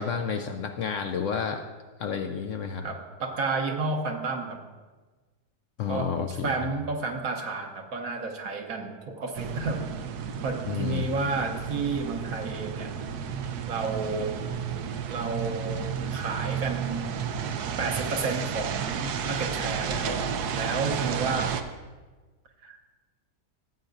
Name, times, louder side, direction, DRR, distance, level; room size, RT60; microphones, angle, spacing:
voice 1, 0.0-1.6 2.0-2.9 5.8-6.7 10.7-11.1, left 6 dB, 65° left, 5 dB, 0.8 m, -30 dB
voice 2, 2.8-4.6 5.9-9.9 10.4-12.9 13.7-14.4 15.1-17.1 17.8-21.5 22.6-22.8, right 4 dB, 65° right, 3 dB, 1.3 m, -31 dB
sound 1, 9.3-21.6, right 7 dB, 80° right, 1.2 m, -32 dB
15.0 x 8.4 x 2.6 m, 1.3 s
omnidirectional pair, 1.7 m